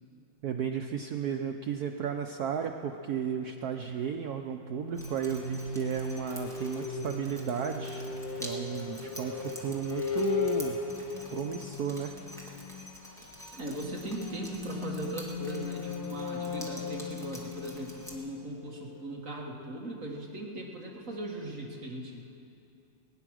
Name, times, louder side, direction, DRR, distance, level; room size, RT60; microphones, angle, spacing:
voice 1, 0.4-8.1 8.4-10.8 11.3-12.1, right 7 dB, 85° right, 4 dB, 0.8 m, -34 dB
sound 1, 4.5-19.1, left 5 dB, 90° left, 2.6 m, -38 dB
Drip, 4.9-18.1, equal, ahead, 1.5 m, -48 dB
voice 2, 13.5-22.2, right 1 dB, 40° right, -1 dB, 1.6 m, -39 dB
20.5 x 10.0 x 6.2 m, 2.6 s
omnidirectional pair, 2.3 m